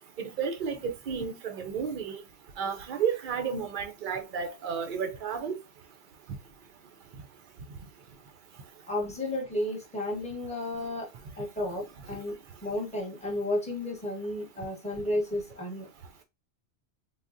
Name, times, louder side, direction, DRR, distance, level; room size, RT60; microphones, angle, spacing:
voice 1, 0.2-2.2 2.6-5.6, right 7 dB, 60° right, 0.6 m, -32 dB
voice 2, 8.9-11.1 11.4-12.4 12.6-15.9, left 1 dB, 5° left, 0.9 m, -32 dB
3.5 x 2.3 x 2.5 m
omnidirectional pair, 1.2 m